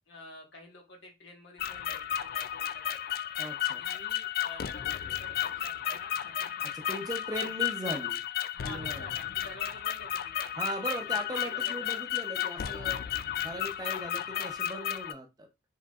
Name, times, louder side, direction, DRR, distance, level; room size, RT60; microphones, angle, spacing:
voice 1, 0.1-3.1 3.6-7.0 7.3-7.5 8.5-10.5 11.0-12.0 14.3-14.7, left 2 dB, 80° left, 1.5 m, -49 dB
sound 1, 1.6-15.1, left 11 dB, 50° left, 0.3 m, -33 dB
voice 2, 3.4-3.8 6.9-8.2 8.6-9.1 10.6-13.0 13.4-15.5, right 1 dB, 20° right, 0.7 m, -38 dB
4.6 x 3.9 x 2.4 m
head